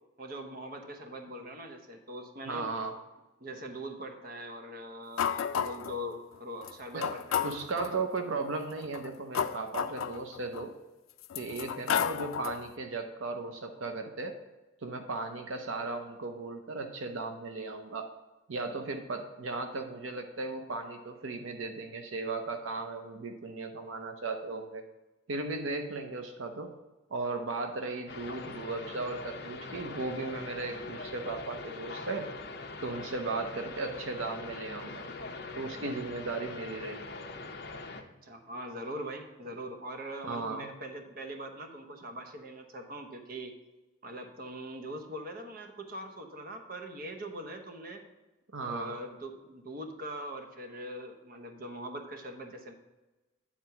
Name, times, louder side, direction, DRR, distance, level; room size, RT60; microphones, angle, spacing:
voice 1, 0.2-2.7 3.4-7.5 9.9-10.0 38.2-43.5 44.0-48.0 48.6-52.7, right 1 dB, 45° right, 5 dB, 0.9 m, -42 dB
voice 2, 2.5-2.9 6.9-7.1 7.4-10.7 11.3-14.3 14.8-18.1 18.5-24.8 25.3-26.7 27.1-32.3 32.8-35.1 35.6-37.0 40.2-40.7 48.5-48.9, right 3 dB, 80° right, 5 dB, 0.7 m, -36 dB
sound 1, 5.2-6.0 6.6-6.7 7.0-8.0 8.8-10.6 11.2-12.7, left 8 dB, 85° left, 0.4 m, -32 dB
sound 2, 28.1-38.0, left 3 dB, 55° left, 0.7 m, -42 dB
9.5 x 4.3 x 5.8 m, 1.1 s
head